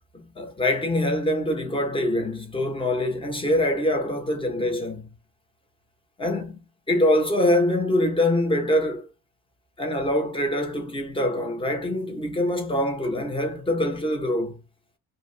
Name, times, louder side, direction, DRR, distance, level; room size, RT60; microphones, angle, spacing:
voice 1, 0.1-5.1 6.2-6.6 6.9-9.0 9.8-14.6, left 1 dB, 15° left, 0.8 m, -24 dB
2.8 x 2.2 x 3.2 m
cardioid pair, 130°, 36 cm